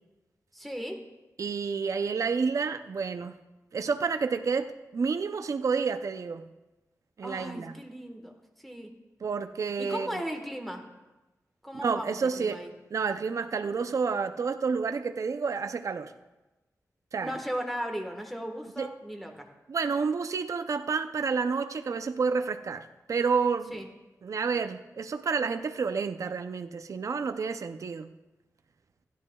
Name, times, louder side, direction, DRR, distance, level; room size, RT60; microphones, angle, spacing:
voice 1, 0.5-1.0 7.2-8.3 8.6-8.9 9.8-10.8 11.6-12.7 17.2-19.5 23.7-23.9, equal, ahead, 3 dB, 1.4 m, -36 dB
voice 2, 1.4-3.4 3.7-6.5 7.2-7.8 9.2-10.2 11.7-12.6 12.9-16.1 17.1-17.4 18.8-18.9 19.7-23.8 24.2-28.1, right 5 dB, 60° right, 9 dB, 0.5 m, -30 dB
16.0 x 11.0 x 2.3 m, 1.1 s
wide cardioid pair, 75°, 6 cm